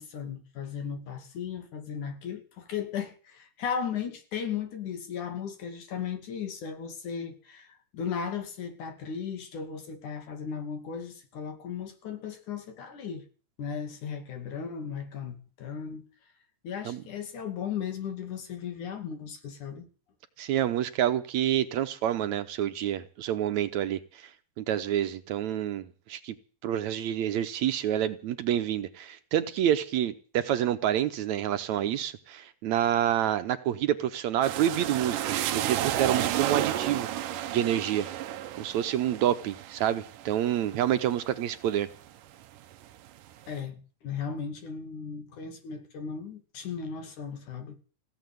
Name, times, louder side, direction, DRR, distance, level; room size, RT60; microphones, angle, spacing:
voice 1, 0.0-13.3 13.6-16.0 16.6-19.9 43.5-47.8, left 7 dB, 70° left, 3.9 m, -36 dB
voice 2, 20.4-24.3 24.6-26.4 26.6-37.1 37.5-38.1 38.6-41.9, right 11 dB, 70° right, 2.1 m, -28 dB
sound 1, 34.4-42.1 42.5-43.3, right 12 dB, 90° right, 2.6 m, -32 dB
17.0 x 7.7 x 9.3 m
omnidirectional pair, 3.7 m